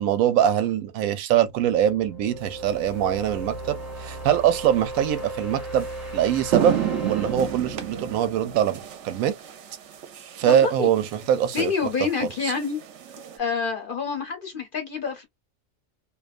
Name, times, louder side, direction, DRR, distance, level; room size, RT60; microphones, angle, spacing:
voice 1, 0.0-5.9 6.1-6.8 7.0-9.3 10.4-11.7 12.4-12.5, right 10 dB, 90° right, 1.0 m, -23 dB
sound 1, 1.5-9.2, right 2 dB, 20° right, 1.1 m, -37 dB
sound 2, 2.8-3.1 5.2-5.3 5.8-5.9 6.3-13.4, right 9 dB, 65° right, 0.9 m, -32 dB
voice 2, 10.4-10.9 11.5-12.8 13.4-15.2, left 5 dB, 50° left, 0.7 m, -27 dB
2.5 x 2.3 x 2.4 m
omnidirectional pair, 1.4 m